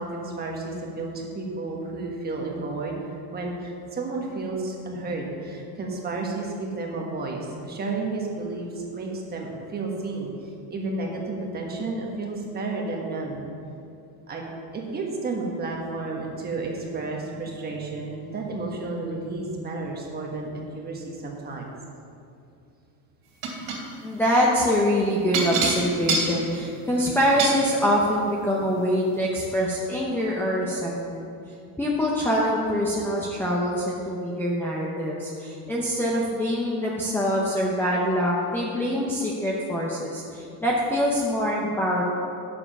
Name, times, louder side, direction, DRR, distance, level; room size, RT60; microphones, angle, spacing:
voice 1, 0.0-3.0 3.3-10.3 10.7-13.5 14.3-14.4 14.7-21.7, right 3 dB, 20° right, -1 dB, 1.4 m, -32 dB
sound 1, 23.4-23.8 25.3-27.6 28.6-28.7 29.1-29.2, right 3 dB, 50° right, 2.7 m, -26 dB
voice 2, 24.0-31.3 31.8-42.0, equal, 5° left, -5 dB, 0.7 m, -24 dB
9.7 x 7.0 x 5.4 m, 2.6 s
cardioid pair, 160°, 42 cm